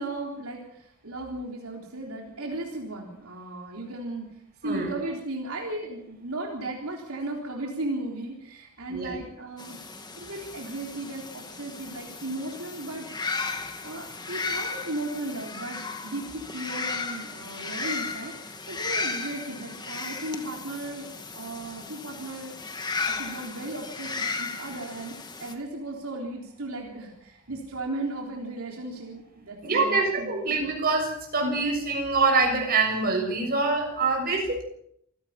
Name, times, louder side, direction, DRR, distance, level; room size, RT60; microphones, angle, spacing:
voice 1, 0.0-4.3 4.6-9.8 10.2-13.1 13.8-18.3 18.7-30.4, right 2 dB, 75° right, 0 dB, 3.8 m, -36 dB
voice 2, 4.6-4.9 8.9-9.2 29.6-34.6, right 3 dB, 45° right, 2 dB, 7.1 m, -25 dB
sound 1, 9.6-25.5, left 4 dB, 20° left, 2.0 m, -35 dB
27.5 x 17.0 x 5.9 m, 0.72 s
head